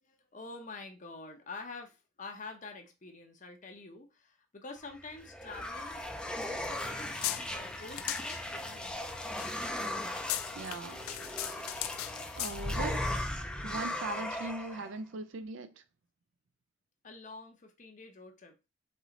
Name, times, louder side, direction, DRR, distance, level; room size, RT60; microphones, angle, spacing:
voice 1, 0.0-6.1 6.4-9.3 17.0-18.5, left 3 dB, 35° left, 0.7 m, -47 dB
sound 1, 4.9-14.9, left 1 dB, 5° left, 0.4 m, -37 dB
sound 2, 6.6-13.0, left 14 dB, 80° left, 0.4 m, -40 dB
voice 2, 10.5-11.1 12.4-15.8, right 3 dB, 60° right, 0.4 m, -40 dB
4.4 x 3.0 x 3.8 m
head